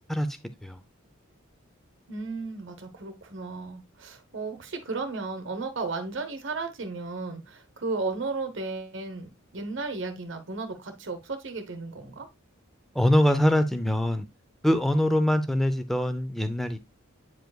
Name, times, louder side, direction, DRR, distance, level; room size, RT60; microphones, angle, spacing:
voice 1, 2.1-12.3, right 3 dB, 60° right, 1.0 m, -34 dB
voice 2, 12.9-14.3 14.6-16.8, left 1 dB, ahead, 0.6 m, -23 dB
9.2 x 4.9 x 2.3 m
head